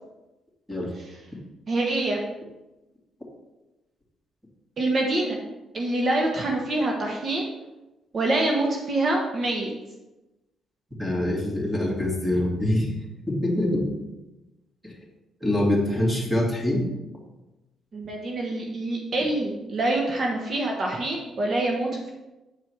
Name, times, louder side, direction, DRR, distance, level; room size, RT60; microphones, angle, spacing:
voice 1, 1.7-2.2 4.8-5.4 5.7-7.5 8.1-9.7 17.9-22.1, right 2 dB, 45° right, 0 dB, 1.2 m, -25 dB
voice 2, 11.0-12.9 13.3-13.9 14.8-14.9 15.4-16.9, left 1 dB, ahead, -3 dB, 2.8 m, -24 dB
8.9 x 4.6 x 4.7 m, 1.0 s
cardioid pair, 90°, 0 cm